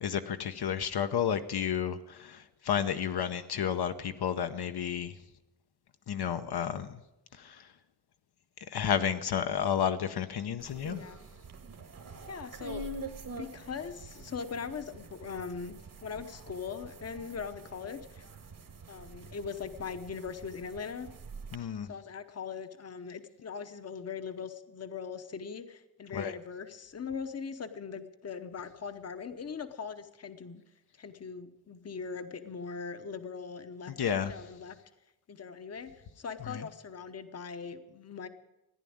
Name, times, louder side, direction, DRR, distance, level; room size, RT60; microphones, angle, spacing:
voice 1, 0.0-5.1 6.1-6.9 7.4-7.6 8.7-11.0 21.5-21.9 26.1-26.3 34.0-34.3 36.5-36.6, left 8 dB, 70° left, 8 dB, 0.9 m, -31 dB
sound 1, 10.6-21.6, right 2 dB, 55° right, 1.6 m, -46 dB
voice 2, 12.3-12.9 13.4-15.8 16.0-18.3 18.9-21.1 21.9-30.6 31.0-33.9 34.2-34.8 35.3-38.3, left 6 dB, 40° left, 10 dB, 0.9 m, -40 dB
15.0 x 10.5 x 8.7 m, 0.97 s
wide cardioid pair, 150°, 39 cm